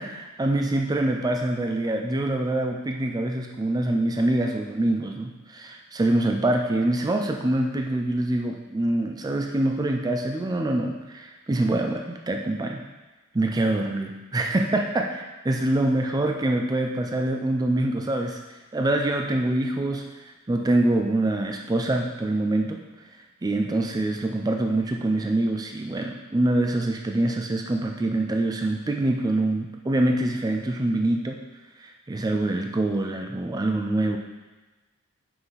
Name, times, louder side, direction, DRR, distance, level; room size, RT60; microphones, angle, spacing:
voice 1, 0.0-12.9 13.3-18.4 18.7-20.1 20.5-22.8 23.4-31.4 31.8-34.2, right 1 dB, 20° right, 3 dB, 0.4 m, -25 dB
5.7 x 5.6 x 4.0 m, 1.2 s
head